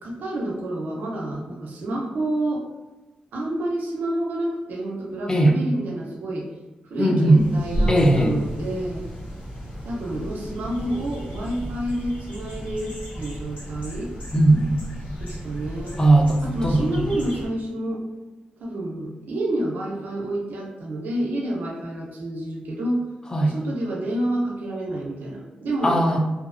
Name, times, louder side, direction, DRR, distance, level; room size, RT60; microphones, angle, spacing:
voice 1, 0.0-2.6 3.3-6.5 6.8-9.1 9.8-14.1 15.2-16.0 16.4-18.0 18.6-23.0 23.5-26.0, right 1 dB, 85° right, -1 dB, 0.5 m, -29 dB
voice 2, 7.0-7.5 7.9-8.3 14.3-14.8 16.0-17.0 23.3-23.6 25.8-26.2, right 1 dB, 25° left, 1 dB, 0.5 m, -18 dB
sound 1, 7.4-17.5, right 1 dB, 80° left, 1.0 m, -33 dB
2.6 x 2.0 x 2.5 m, 1.1 s
cardioid pair, 60°, 3 cm